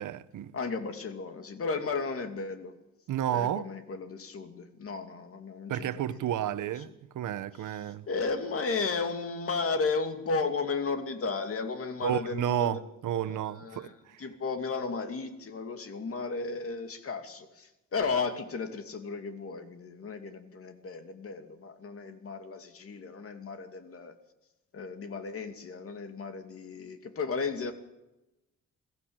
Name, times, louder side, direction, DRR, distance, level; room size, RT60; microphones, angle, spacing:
voice 1, 0.0-0.5 3.1-3.7 5.7-8.1 12.0-14.2, right 11 dB, 85° right, 1.0 m, -32 dB
voice 2, 0.5-2.7 3.3-6.2 7.7-7.8 8.1-12.8 13.2-13.9 14.2-24.1 24.7-27.7, left 4 dB, 50° left, 2.6 m, -34 dB
22.0 x 15.5 x 8.9 m
wide cardioid pair, 145°, 30 cm